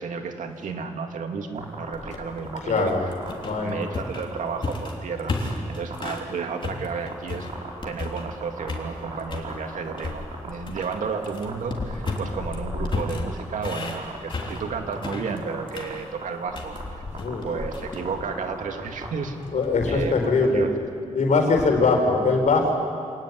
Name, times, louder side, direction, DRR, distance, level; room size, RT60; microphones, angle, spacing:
voice 1, 0.0-3.1 3.6-7.5 7.8-17.0 17.4-19.4 19.9-20.7, right 5 dB, 80° right, 4 dB, 2.4 m, -32 dB
sound 1, 1.6-2.1 2.5-2.7 3.2-4.4 4.7-4.9 5.3-5.5 5.9-6.0 6.4-7.1 7.5-10.5 10.8-11.5 11.8-12.4 12.7-13.5 14.0-14.6 14.9-15.1 15.4-15.9 16.2-16.3 16.5-16.8 17.1-17.3 17.6-19.1, right 4 dB, 55° right, 5.1 m, -36 dB
sound 2, 1.9-6.3 6.6-8.4 8.7-9.5 10.0-20.5, left 3 dB, 40° left, 3.4 m, -34 dB
voice 2, 2.7-3.1 3.4-3.8 17.1-17.5 19.5-20.6 21.1-22.7, left 3 dB, 70° left, 3 dB, 4.6 m, -21 dB
26.0 x 18.5 x 9.6 m, 2.4 s
wide cardioid pair, 135°, 13 cm